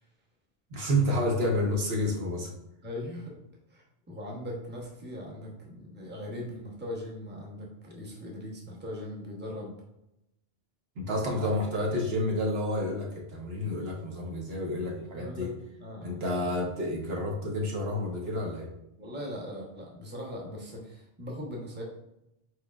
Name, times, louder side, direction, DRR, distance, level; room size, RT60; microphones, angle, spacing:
voice 1, 0.7-2.5 11.0-15.5 16.0-18.7, left 1 dB, 65° right, -1 dB, 1.1 m, -29 dB
voice 2, 2.8-3.3 3.7-9.8 11.4-11.5 15.1-15.5 15.8-16.2 19.0-21.8, left 1 dB, 10° right, -2 dB, 0.8 m, -40 dB
4.6 x 4.4 x 2.3 m, 0.87 s
omnidirectional pair, 1.1 m